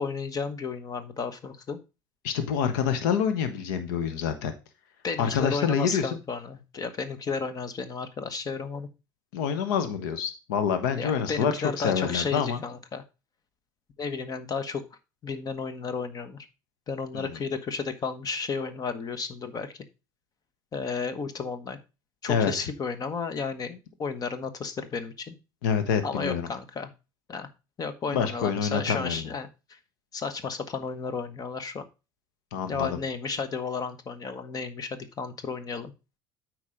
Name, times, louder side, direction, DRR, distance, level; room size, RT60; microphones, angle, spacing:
voice 1, 0.0-1.8 5.0-8.9 11.0-13.0 14.0-14.8 15.2-16.5 16.9-19.7 20.7-21.8 22.2-25.4 26.0-26.9 27.3-27.5 27.8-29.8 30.1-31.9 32.7-35.9, left 5 dB, 40° left, 10 dB, 1.2 m, -33 dB
voice 2, 2.2-4.5 5.2-6.2 9.3-12.6 17.1-17.4 22.3-22.5 25.6-26.5 28.1-29.2 32.5-33.0, left 7 dB, 80° left, 10 dB, 1.2 m, -27 dB
8.5 x 4.7 x 5.0 m, 0.29 s
hypercardioid pair, 80°, 10 cm